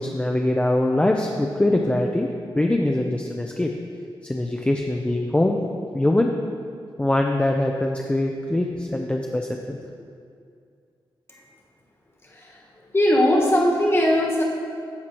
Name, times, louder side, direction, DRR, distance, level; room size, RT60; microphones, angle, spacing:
voice 1, 0.0-2.3 2.6-3.7 4.2-5.6 5.9-6.3 7.0-9.8, left 1 dB, 15° left, 0 dB, 0.5 m, -22 dB
voice 2, 12.2-12.6 12.9-14.4, left 1 dB, 30° left, -2 dB, 1.5 m, -20 dB
14.0 x 4.8 x 3.0 m, 2.3 s
cardioid pair, 90°, 9 cm